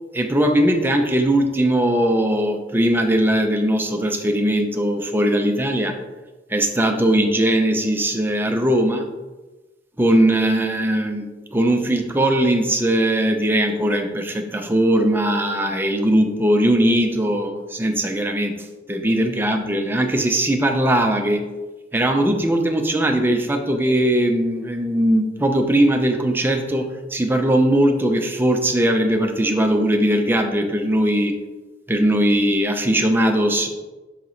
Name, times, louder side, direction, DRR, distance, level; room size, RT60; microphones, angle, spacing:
voice 1, 0.1-6.0 6.5-9.0 10.0-18.5 18.9-21.4 21.9-31.3 31.9-33.7, right 1 dB, 10° right, 3 dB, 0.6 m, -19 dB
5.8 x 4.7 x 4.0 m, 1.2 s
head